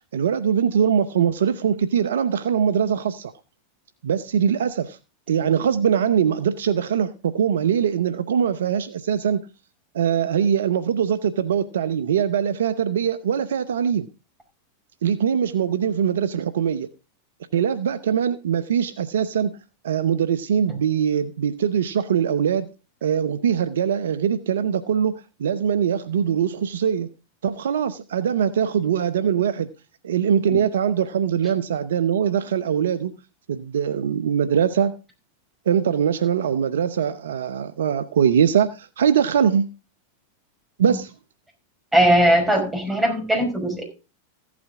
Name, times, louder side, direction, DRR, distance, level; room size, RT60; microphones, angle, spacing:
voice 1, 0.1-3.3 4.0-5.0 5.3-9.4 9.9-14.1 15.0-16.9 17.5-19.5 19.8-22.7 23.0-27.1 27.4-29.7 30.0-33.2 33.5-34.9 35.7-39.6 40.8-41.1, right 8 dB, 75° right, 0.8 m, -22 dB
voice 2, 41.9-43.8, right 1 dB, 10° right, 5.1 m, -19 dB
15.0 x 8.6 x 3.6 m
hypercardioid pair, 100°, 0 cm